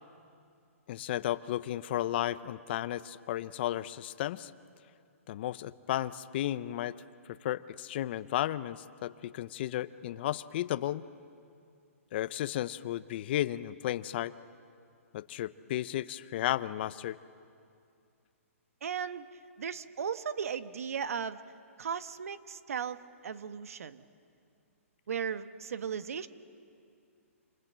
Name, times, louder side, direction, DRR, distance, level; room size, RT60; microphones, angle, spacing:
voice 1, 0.9-4.5 5.3-7.0 7.3-11.0 12.1-14.3 15.1-17.2, left 13 dB, 45° left, 16 dB, 0.7 m, -34 dB
voice 2, 18.8-19.3 19.6-21.4 21.8-24.0 25.1-26.3, right 7 dB, 75° right, 12 dB, 1.2 m, -36 dB
27.5 x 27.5 x 7.5 m, 2.4 s
hypercardioid pair, 150°, 8 cm